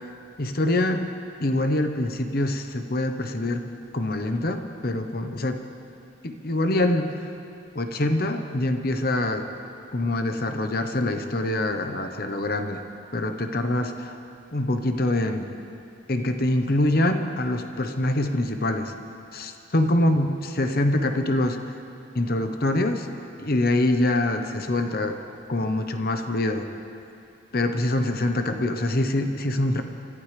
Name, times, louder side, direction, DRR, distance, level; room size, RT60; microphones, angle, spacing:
voice 1, 0.4-1.1 1.4-3.6 3.9-5.6 6.2-7.2 7.7-9.4 9.9-12.8 13.1-14.2 14.5-15.5 16.1-18.9 19.3-21.6 22.1-23.1 23.4-25.2 25.5-26.6 27.5-29.8, left 1 dB, 50° left, 6 dB, 1.0 m, -24 dB
27.5 x 14.5 x 3.4 m, 2.7 s
head